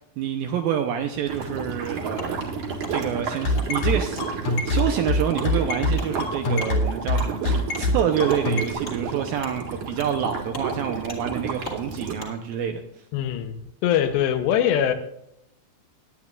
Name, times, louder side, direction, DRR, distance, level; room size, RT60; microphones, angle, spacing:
voice 1, 0.2-2.4 2.9-13.0, right 8 dB, 80° right, 5 dB, 2.1 m, -27 dB
sound 1, 1.3-12.1, right 5 dB, 55° right, 2.8 m, -31 dB
Wood, 2.2-2.3 2.8-2.9 3.5-3.7 4.1-4.3 4.7-4.9 5.3-5.5 5.9-6.1 6.6-6.7 7.2-7.3 7.7-7.9 8.3-8.4 8.8-9.0 9.4-9.6 10.0-10.2 10.5-10.7 11.1-11.2 11.6-11.8 12.2-12.3, left 1 dB, 30° left, 1.4 m, -37 dB
sound 2, 3.4-8.7, left 2 dB, 60° left, 3.6 m, -23 dB
voice 2, 13.1-14.9, left 10 dB, 80° left, 8 dB, 3.1 m, -22 dB
18.5 x 10.0 x 2.4 m, 0.78 s
omnidirectional pair, 4.9 m